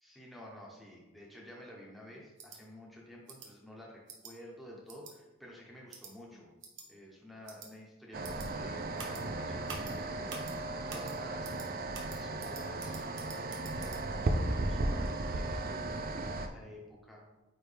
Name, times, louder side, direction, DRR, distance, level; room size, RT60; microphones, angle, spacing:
voice 1, 0.0-6.5 6.9-13.0 13.7-17.2, left 1 dB, ahead, -4 dB, 1.2 m, -51 dB
sound 1, 2.4-2.6 3.3-3.5 4.1-4.3 4.9-5.1 5.9-6.1 6.6-6.8 7.5-7.7 8.2-8.5 9.0-9.2 9.7-9.9 10.3-10.5 10.9-11.1 11.4-11.7 11.9-14.0, right 5 dB, 60° right, 1.0 m, -46 dB
sound 2, 8.1-16.5, right 2 dB, 45° right, 0.5 m, -35 dB
8.7 x 3.2 x 3.4 m, 1.1 s
head